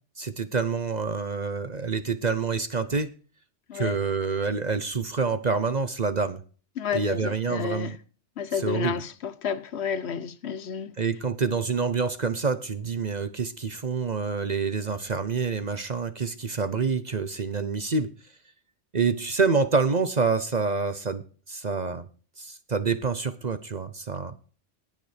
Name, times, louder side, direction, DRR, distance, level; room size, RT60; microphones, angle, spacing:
voice 1, 0.2-3.1 3.7-6.4 6.9-8.0 8.6-9.0 11.0-18.1 18.9-22.1 22.4-24.3, right 4 dB, 40° right, 0.8 m, -27 dB
voice 2, 6.8-7.9 8.4-10.9, left 7 dB, 65° left, 1.0 m, -31 dB
19.5 x 6.7 x 3.4 m
omnidirectional pair, 1.3 m